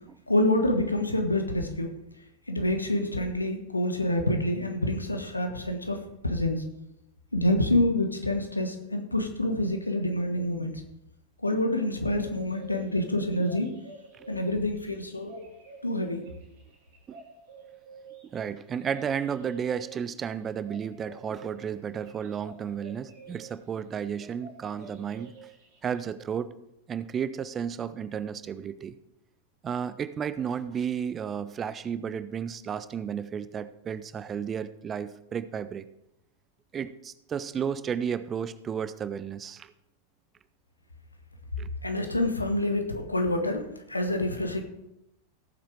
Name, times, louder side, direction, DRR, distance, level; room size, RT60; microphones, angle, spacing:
voice 1, 0.3-1.9 2.5-6.6 7.3-10.7 11.4-13.7 14.3-15.5 15.8-16.3 41.8-44.6, left 1 dB, 85° left, 5 dB, 1.4 m, -27 dB
sound 1, 12.1-23.6 23.9-26.0, right 4 dB, 60° right, 4.0 m, -50 dB
voice 2, 18.3-25.3 25.8-26.5 26.9-29.0 29.6-35.8 36.7-39.7 41.6-41.7, right 7 dB, 25° right, 14 dB, 0.6 m, -33 dB
17.0 x 7.6 x 3.5 m, 0.85 s
figure-of-eight pair, 90°, 0 cm